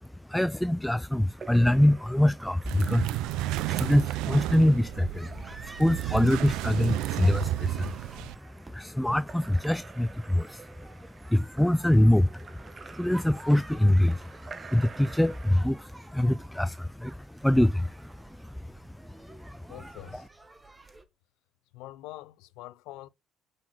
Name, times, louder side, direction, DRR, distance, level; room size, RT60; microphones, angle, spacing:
voice 1, 0.0-8.3 8.6-19.7 20.1-20.2, left 1 dB, 5° left, 0.4 m, -25 dB
Splash splatter / Drip / Trickle dribble, 1.3-15.6, right 5 dB, 40° right, 1.0 m, -49 dB
sound 1, 2.7-8.3, right 15 dB, 70° right, 0.3 m, -32 dB
sound 2, 5.1-21.0, right 2 dB, 20° right, 1.6 m, -50 dB
voice 2, 19.7-20.3 21.7-23.1, left 16 dB, 70° left, 0.5 m, -44 dB
6.5 x 5.9 x 4.3 m
hypercardioid pair, 50°, 0 cm